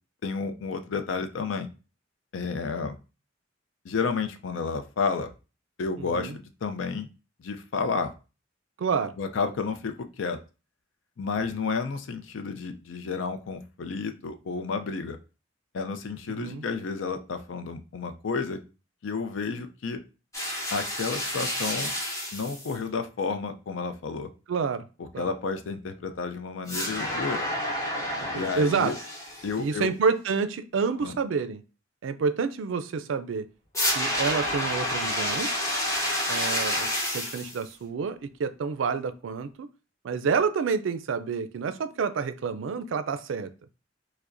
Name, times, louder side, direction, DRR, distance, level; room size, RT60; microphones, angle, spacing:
voice 1, 0.2-1.7 2.3-3.0 3.8-5.3 5.8-7.1 7.4-8.1 9.2-10.4 11.2-15.2 15.7-18.6 19.0-20.0 20.7-22.0 22.3-24.3 25.0-27.4 28.3-29.0 29.4-29.9 31.0-31.2, left 4 dB, 80° left, 8 dB, 0.5 m, -31 dB
voice 2, 6.0-6.4 8.8-9.2 16.3-16.6 24.5-24.8 25.1-25.3 28.2-28.9 29.6-31.6 32.0-33.5 33.9-35.5 36.3-39.7 40.0-43.5, right 5 dB, 80° right, 12 dB, 0.4 m, -28 dB
sound 1, 20.3-22.8 26.7-29.6 33.7-37.6, left 1 dB, 15° left, 0.9 m, -29 dB
4.7 x 2.1 x 2.5 m, 0.32 s
head